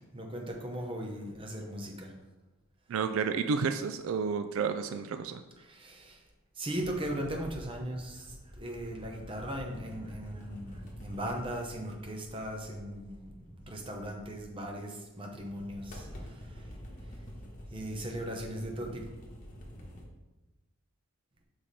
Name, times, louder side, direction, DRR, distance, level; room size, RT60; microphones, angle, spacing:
voice 1, 0.0-2.1 5.6-6.2 6.6-16.7 17.7-19.1, right 1 dB, 25° right, 1 dB, 0.8 m, -38 dB
voice 2, 2.9-5.4, right 5 dB, 70° right, 9 dB, 0.3 m, -31 dB
sound 1, 6.7-14.8 15.4-20.0, equal, 35° left, 1.2 m, -48 dB
5.6 x 4.9 x 4.1 m, 1.1 s
head